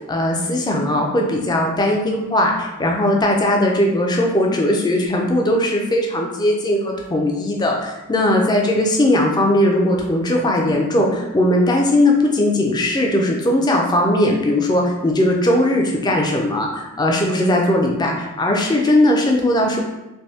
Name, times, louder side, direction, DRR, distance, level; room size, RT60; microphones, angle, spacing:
voice 1, 0.1-19.8, left 1 dB, 20° left, 0 dB, 0.4 m, -18 dB
3.3 x 2.6 x 2.7 m, 0.99 s
head